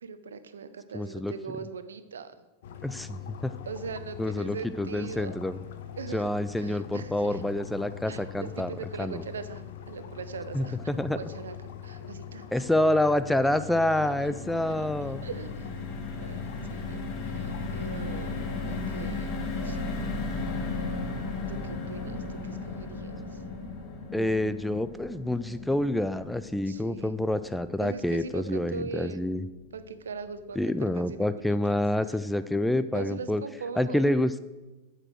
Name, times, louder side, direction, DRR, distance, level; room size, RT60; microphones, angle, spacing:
voice 1, 0.0-2.3 3.7-5.4 6.0-6.3 6.6-7.4 8.1-11.5 11.8-12.7 13.8-14.9 15.2-15.9 16.2-16.4 16.7-20.0 21.5-23.4 26.6-27.2 27.8-29.2 29.7-31.8 32.9-34.1, right 5 dB, 65° right, 11 dB, 0.7 m, -41 dB
voice 2, 0.9-1.3 2.8-3.5 4.2-5.6 6.1-8.7 9.0-9.2 10.5-11.2 12.5-15.2 24.1-29.4 30.6-33.4 33.8-34.3, left 1 dB, 5° left, 12 dB, 0.4 m, -27 dB
sound 1, 2.6-19.1, left 10 dB, 55° left, 0.8 m, -42 dB
sound 2, 13.7-30.0 30.4-30.6 30.8-31.1, left 3 dB, 35° left, 1.8 m, -36 dB
8.7 x 6.6 x 6.2 m, 1.1 s
figure-of-eight pair, 90°, 0 cm